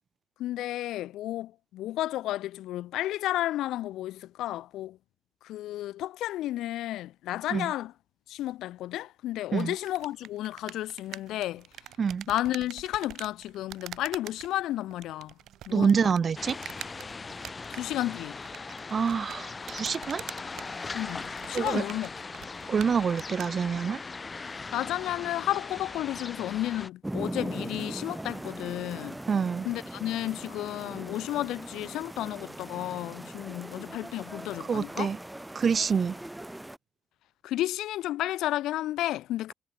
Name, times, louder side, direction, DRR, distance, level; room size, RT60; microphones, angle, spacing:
voice 1, 0.4-5.0 5.4-7.9 8.3-11.6 12.3-15.3 15.7-16.1 17.7-18.4 20.9-22.1 24.7-29.2 29.6-35.1 37.4-39.5, left 14 dB, 85° left, 1.1 m, -32 dB
sound 1, 9.5-23.5, right 12 dB, 80° right, 4.9 m, -46 dB
voice 2, 15.7-16.6 18.9-20.2 21.5-21.8 22.7-24.0 29.3-29.7 34.6-35.2 35.5-36.2, right 6 dB, 45° right, 1.3 m, -26 dB
sound 2, 16.4-26.9, left 4 dB, 30° left, 3.1 m, -39 dB
sound 3, 27.0-36.8, right 1 dB, 10° right, 4.0 m, -40 dB
cardioid pair, 90°, 0 cm